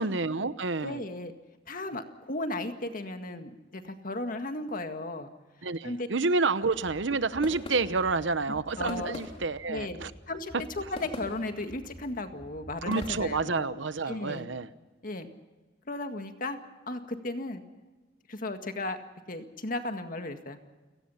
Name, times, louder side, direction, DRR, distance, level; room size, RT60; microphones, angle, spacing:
voice 1, 0.0-1.0 5.6-10.1 12.9-14.7, right 3 dB, 70° right, 14 dB, 1.0 m, -29 dB
voice 2, 0.8-1.3 1.7-5.3 5.8-6.1 8.8-9.3 9.7-10.0 10.3-13.7 14.1-14.5 15.0-15.3 15.9-16.6 16.9-17.6 18.3-19.0 19.3-20.6, left 2 dB, 45° left, 7 dB, 1.9 m, -35 dB
sound 1, 6.6-13.5, left 1 dB, 30° left, 3.5 m, -45 dB
29.0 x 18.5 x 5.7 m, 1.2 s
head